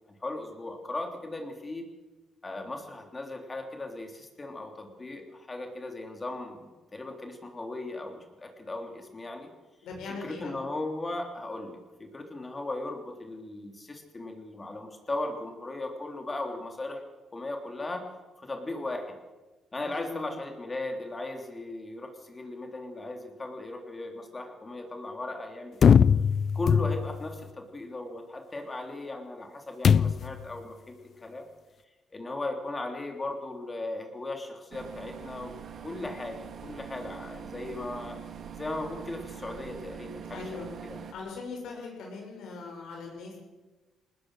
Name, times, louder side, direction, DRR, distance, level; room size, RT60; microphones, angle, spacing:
voice 1, 0.1-1.9 2.4-9.5 10.1-17.0 17.3-18.1 18.4-19.2 19.7-26.0 26.5-31.0 31.2-31.5 32.1-35.5 35.8-38.2 38.6-41.1, left 2 dB, 25° left, 4 dB, 3.3 m, -37 dB
voice 2, 9.8-10.6 19.8-20.3 40.3-40.7 41.1-43.4, left 4 dB, 80° left, 0 dB, 6.6 m, -40 dB
sound 1, 25.8-27.3 29.8-30.4, left 7 dB, 55° left, 0.6 m, -21 dB
sound 2, 34.7-41.1, right 7 dB, 60° right, 2.1 m, -43 dB
20.5 x 19.5 x 6.6 m, 1.2 s
cardioid pair, 90°, 0 cm